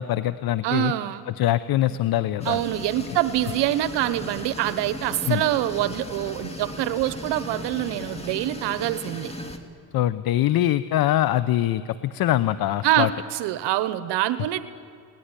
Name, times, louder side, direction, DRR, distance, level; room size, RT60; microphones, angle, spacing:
voice 1, 0.0-0.9 1.4-2.6 5.3-5.4 9.9-13.1, left 13 dB, 55° left, 14 dB, 0.8 m, -23 dB
voice 2, 0.6-1.2 2.4-9.3 12.8-14.6, right 13 dB, 70° right, 12 dB, 1.1 m, -25 dB
sound 1, 2.4-9.6, left 1 dB, 15° left, 2.2 m, -37 dB
29.0 x 19.0 x 9.9 m, 2.3 s
cardioid pair, 105°, 43 cm